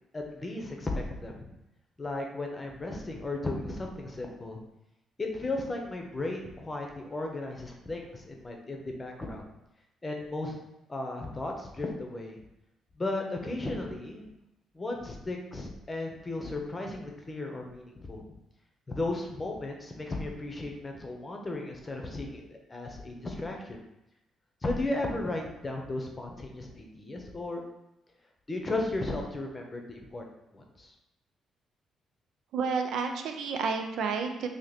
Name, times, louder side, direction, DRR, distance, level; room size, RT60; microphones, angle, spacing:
voice 1, 0.1-1.5 2.0-4.6 5.2-9.4 10.0-10.6 10.9-12.4 13.0-14.3 14.7-18.3 18.9-23.8 24.6-27.6 28.5-30.2 30.5-30.9, left 2 dB, 25° left, 1 dB, 0.7 m, -35 dB
voice 2, 32.5-34.5, right 5 dB, 75° right, 5 dB, 0.5 m, -30 dB
2.9 x 2.8 x 4.0 m, 0.89 s
cardioid pair, 90°, 0 cm